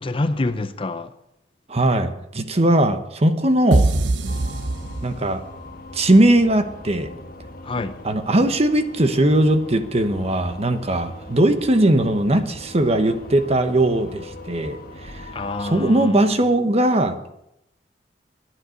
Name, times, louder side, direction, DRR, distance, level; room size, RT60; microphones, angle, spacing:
voice 1, 0.0-1.1 7.6-8.0 15.3-16.4, left 2 dB, 30° left, 0.6 m, -26 dB
voice 2, 1.7-3.9 5.0-5.4 5.9-7.1 8.0-14.8 15.6-17.2, right 1 dB, 35° right, 1.0 m, -19 dB
sound 1, 3.7-5.5, right 2 dB, 80° right, 0.8 m, -21 dB
sound 2, 4.3-15.7, left 1 dB, 55° left, 1.5 m, -40 dB
11.0 x 9.6 x 6.4 m
head